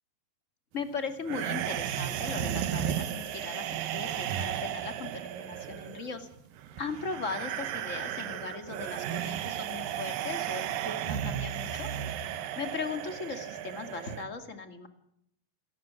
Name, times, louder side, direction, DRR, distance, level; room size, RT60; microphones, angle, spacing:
voice 1, 0.7-6.3 6.8-11.9 12.5-14.9, left 4 dB, 25° left, 6 dB, 1.7 m, -38 dB
sound 1, 1.3-14.2, right 10 dB, 70° right, 2.6 m, -34 dB
28.0 x 14.0 x 9.5 m, 0.76 s
omnidirectional pair, 4.7 m